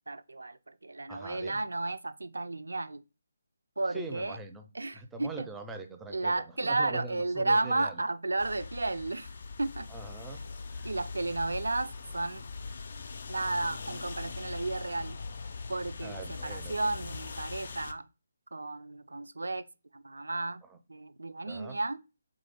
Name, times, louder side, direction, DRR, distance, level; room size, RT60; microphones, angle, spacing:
voice 1, 0.1-3.0 3.8-4.4 4.7-5.5 6.1-9.3 9.6-9.9 10.8-12.4 13.3-15.2 15.7-18.0 18.5-19.7 19.9-20.6 20.9-22.0, right 2 dB, 70° right, 0.4 m, -33 dB
voice 2, 1.1-1.6 3.9-4.6 4.9-6.3 6.6-7.9 9.9-10.4 10.7-10.9 16.0-16.7 21.5-21.8, right 3 dB, 5° right, 0.5 m, -42 dB
sound 1, 8.4-17.9, left 4 dB, 50° left, 0.4 m, -41 dB
3.7 x 3.1 x 3.5 m
figure-of-eight pair, 150°, 0 cm